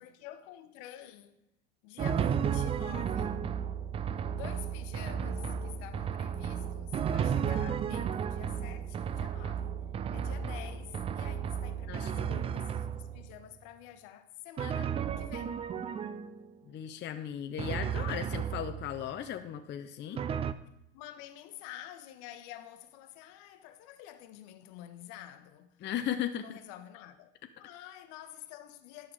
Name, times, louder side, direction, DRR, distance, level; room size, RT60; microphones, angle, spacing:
voice 1, 0.0-1.4 1.8-3.5 4.3-9.8 10.1-15.7 20.9-25.9 26.3-27.3 27.6-29.1, left 12 dB, 60° left, 1.0 m, -49 dB
Drum, 2.0-13.3 14.6-16.5 17.6-19.1 20.2-20.5, right 8 dB, 20° right, 0.3 m, -33 dB
voice 2, 11.9-12.5 16.7-20.2 25.8-26.5, left 10 dB, 30° left, 0.6 m, -36 dB
11.0 x 5.7 x 4.9 m
hypercardioid pair, 80°, 36 cm